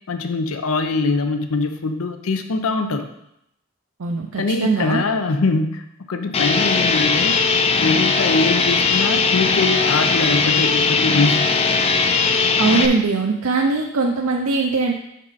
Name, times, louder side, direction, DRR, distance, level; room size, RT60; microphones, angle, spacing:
voice 1, 0.1-3.1 4.4-7.4 7.8-11.5, left 3 dB, 85° left, 7 dB, 0.6 m, -22 dB
voice 2, 4.0-5.0 12.6-14.9, right 3 dB, 85° right, 1 dB, 0.5 m, -20 dB
sound 1, 6.3-12.9, left 4 dB, 30° left, 0.4 m, -19 dB
6.2 x 5.3 x 4.1 m, 0.79 s
head